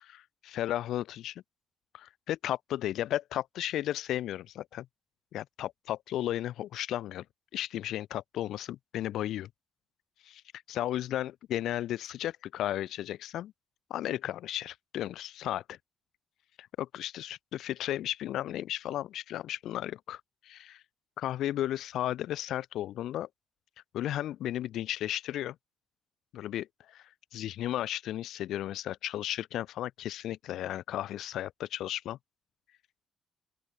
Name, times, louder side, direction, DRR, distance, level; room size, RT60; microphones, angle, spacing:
voice 1, 0.5-1.4 1.9-4.9 5.3-7.2 7.5-9.5 10.3-10.4 10.7-13.5 13.9-15.8 16.6-20.8 21.2-23.3 23.9-25.5 26.3-27.0 27.3-32.2, left 12 dB, 80° left, 1.0 m, -34 dB
open air
cardioid pair, 90°, 0 cm